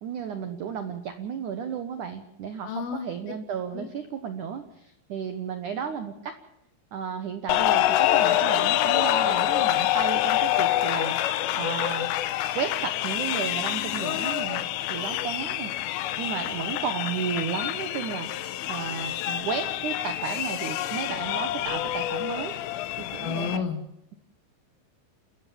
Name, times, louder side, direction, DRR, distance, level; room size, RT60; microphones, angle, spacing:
voice 1, 0.0-6.3 6.9-12.1 12.6-22.6 23.0-23.7, right 7 dB, 85° right, 9 dB, 1.7 m, -33 dB
voice 2, 2.6-3.1 3.7-3.9 23.2-23.8, left 7 dB, 60° left, 6 dB, 2.9 m, -31 dB
sound 1, 7.5-23.6, left 14 dB, 90° left, 3.6 m, -26 dB
29.0 x 14.5 x 7.3 m, 0.80 s
omnidirectional pair, 5.6 m